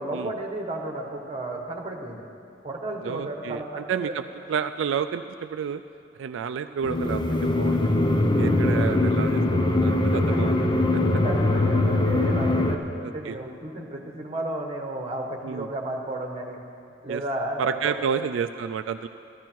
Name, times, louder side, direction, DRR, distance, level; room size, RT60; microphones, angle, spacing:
voice 1, 0.0-2.3 2.6-4.1 10.1-10.8 11.2-16.6 17.0-17.9, right 1 dB, 30° right, 2 dB, 1.4 m, -33 dB
voice 2, 3.0-4.2 4.5-5.8 6.2-7.8 8.3-10.6 10.9-11.2 13.0-13.4 15.4-15.7 17.1-17.2 17.6-19.1, right 7 dB, 80° right, 9 dB, 0.3 m, -30 dB
sound 1, 6.8-12.7, left 2 dB, 25° left, 0.7 m, -22 dB
15.0 x 13.0 x 4.6 m, 2.5 s
head